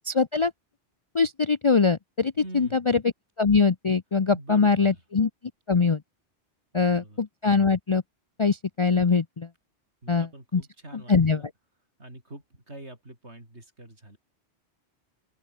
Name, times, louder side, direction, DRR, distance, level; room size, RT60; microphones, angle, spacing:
voice 1, 0.1-0.5 1.1-3.0 3.4-5.3 5.7-6.0 6.7-8.0 8.4-9.5 10.1-10.6 11.1-11.4, left 4 dB, 30° left, 0.7 m, -22 dB
voice 2, 2.4-2.9 4.3-5.0 6.7-7.2 10.0-11.5 12.0-14.2, right 1 dB, 85° right, 7.1 m, -44 dB
open air
omnidirectional pair, 1.1 m